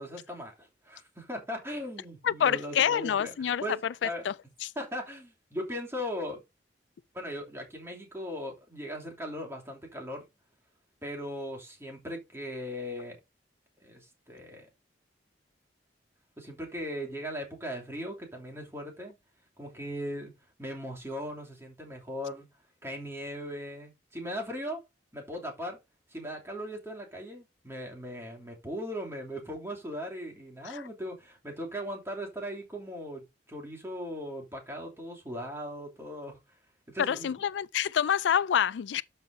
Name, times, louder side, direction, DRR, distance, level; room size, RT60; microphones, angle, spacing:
voice 1, 0.0-3.3 3.6-3.8 4.0-4.2 4.8-6.4 7.1-10.2 11.0-13.2 13.8-14.7 16.4-19.1 19.6-22.5 22.8-24.8 25.1-25.8 26.1-36.4 36.9-37.3, equal, 15° right, 2.9 m, -38 dB
voice 2, 2.2-4.7 30.6-30.9 37.0-39.0, left 8 dB, 80° left, 0.4 m, -28 dB
12.0 x 5.5 x 2.7 m
head